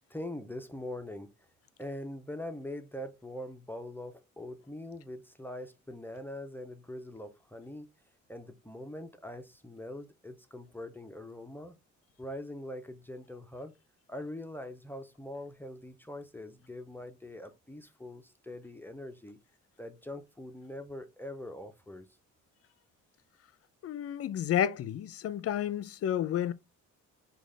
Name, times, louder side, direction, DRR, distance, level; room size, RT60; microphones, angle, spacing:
voice 1, 0.1-1.3 1.8-7.9 8.3-11.7 12.2-13.7 14.1-19.4 19.8-22.1, left 1 dB, 5° left, 0.5 m, -43 dB
voice 2, 23.8-26.5, left 10 dB, 50° left, 0.5 m, -31 dB
5.0 x 2.3 x 3.3 m
cardioid pair, 90°, 30 cm